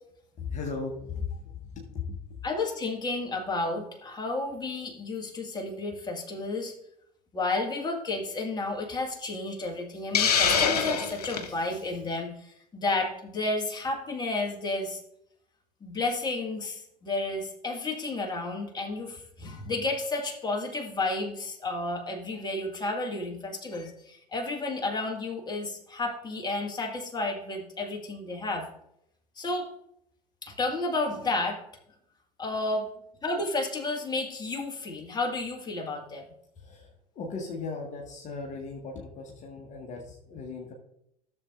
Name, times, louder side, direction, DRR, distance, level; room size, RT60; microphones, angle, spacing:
voice 1, 0.4-2.4 36.6-40.7, left 4 dB, 35° left, -1 dB, 1.6 m, -37 dB
voice 2, 2.4-6.7 7.3-15.0 15.8-28.7 29.4-29.7 30.4-31.6 32.4-32.9 33.2-36.2, left 2 dB, 20° left, 1 dB, 2.0 m, -32 dB
Hiss, 10.1-11.5, left 6 dB, 75° left, 0.9 m, -24 dB
14.0 x 7.1 x 2.6 m, 0.77 s
figure-of-eight pair, 70°, 20 cm